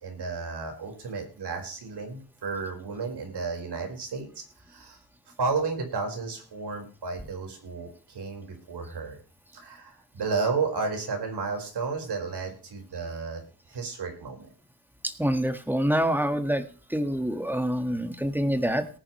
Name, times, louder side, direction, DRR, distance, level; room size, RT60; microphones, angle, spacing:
voice 1, 0.0-5.0 5.4-9.2 9.5-13.4 13.7-14.5, right 4 dB, 90° right, 3 dB, 4.9 m, -32 dB
voice 2, 15.0-16.6 16.9-19.0, equal, 5° right, 8 dB, 1.6 m, -26 dB
19.0 x 10.0 x 3.2 m, 0.40 s
wide cardioid pair, 125°, 39 cm